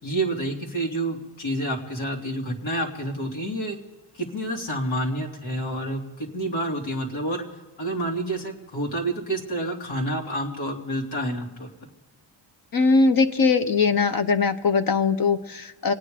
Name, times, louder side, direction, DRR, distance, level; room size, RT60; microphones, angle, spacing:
voice 1, 0.0-3.8 4.2-7.4 7.8-11.7, right 1 dB, 75° left, 1 dB, 3.0 m, -28 dB
voice 2, 12.7-15.9, left 4 dB, 45° left, 8 dB, 1.0 m, -21 dB
27.0 x 9.8 x 5.1 m, 1.2 s
wide cardioid pair, 125°, 47 cm